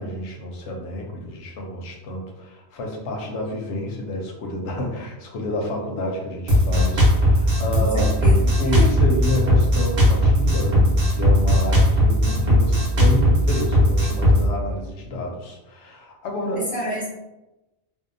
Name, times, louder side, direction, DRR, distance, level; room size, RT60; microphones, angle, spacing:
voice 1, 0.0-8.1 8.6-16.6, left 1 dB, 85° left, 0 dB, 0.9 m, -29 dB
Drum kit, 6.5-14.4, equal, 80° right, 1.1 m, -17 dB
voice 2, 7.7-8.9 16.7-17.1, right 1 dB, 30° right, -10 dB, 0.8 m, -29 dB
2.7 x 2.1 x 2.5 m, 1.0 s
omnidirectional pair, 1.1 m